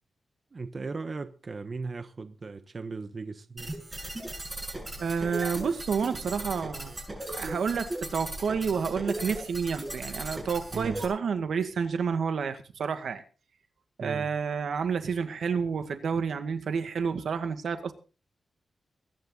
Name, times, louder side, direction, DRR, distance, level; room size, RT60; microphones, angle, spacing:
voice 1, 0.5-3.8 10.7-11.0 14.0-14.3, right 4 dB, 40° right, 1.2 m, -37 dB
sound 1, 3.6-11.1, right 1 dB, 20° right, 7.2 m, -37 dB
voice 2, 5.0-7.0 7.3-13.2 14.0-17.9, right 6 dB, 75° right, 2.0 m, -29 dB
23.0 x 10.5 x 4.0 m
wide cardioid pair, 120°, 0 cm